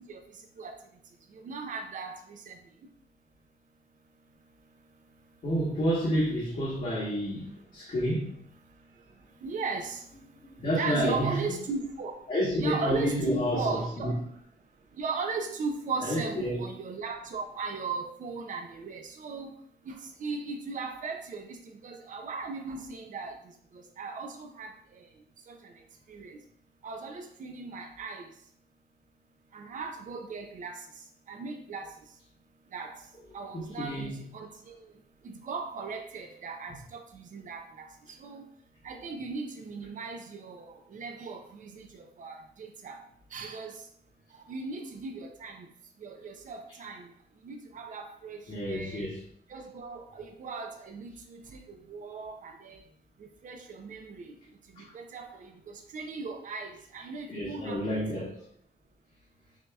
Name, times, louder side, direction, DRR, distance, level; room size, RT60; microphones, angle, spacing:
voice 1, 1.4-2.6 9.4-10.0 10.8-12.1 12.6-14.2 15.0-19.5 19.9-20.0 20.2-21.5 21.8-23.4 24.0-24.7 25.5-25.6 26.1-26.4 26.8-28.2 29.5-30.8 31.3-31.9 32.7-32.9 33.3-34.7 35.2-37.9 38.2-38.4 38.8-40.7 40.9-41.9 42.2-43.0 43.3-43.8 44.5-45.6 46.0-47.1 47.4-48.4 48.7-49.0 49.5-51.6 51.9-52.8 53.4-54.3 54.9-57.8, right 4 dB, 50° right, 4 dB, 0.5 m, -37 dB
voice 2, 5.4-8.4 10.5-11.4 12.3-14.2 16.0-16.6 33.5-34.2 36.7-36.8 48.5-49.2 54.8-54.9 57.3-58.4, equal, 50° left, -7 dB, 1.2 m, -30 dB
6.1 x 2.7 x 2.3 m, 0.63 s
wide cardioid pair, 125°, 17 cm